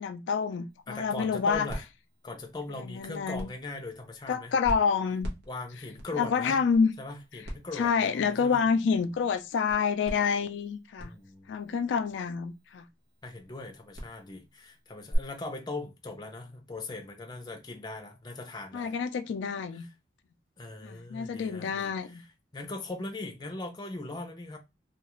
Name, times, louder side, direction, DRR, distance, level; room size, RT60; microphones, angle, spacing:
voice 1, 0.0-1.7 2.7-3.5 4.3-5.3 6.1-6.9 7.7-11.1 11.5-12.8 18.7-19.8 20.8-22.2, left 6 dB, 90° left, 0.3 m, -28 dB
sound 1, 0.7-15.2, equal, 60° right, 0.8 m, -44 dB
voice 2, 0.9-1.9 2.2-4.5 5.5-6.6 7.0-8.6 11.0-11.5 13.2-19.0 19.8-19.9 20.6-22.3 22.5-24.6, left 2 dB, 25° left, 0.6 m, -40 dB
2.4 x 2.3 x 3.0 m
head